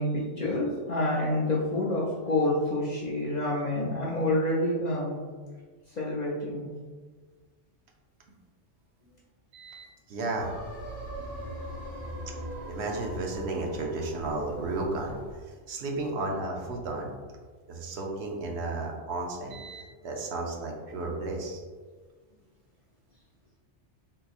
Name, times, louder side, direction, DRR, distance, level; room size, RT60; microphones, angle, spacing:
voice 1, 0.0-5.2 5.9-6.7, left 1 dB, 50° left, -5 dB, 0.5 m, -28 dB
voice 2, 9.5-10.5 12.7-15.2 15.5-17.1 17.7-21.6, right 2 dB, 70° right, 0 dB, 0.8 m, -33 dB
sound 1, 10.4-15.4, right 1 dB, 55° right, 1.2 m, -40 dB
3.8 x 2.8 x 2.4 m, 1.4 s
omnidirectional pair, 1.2 m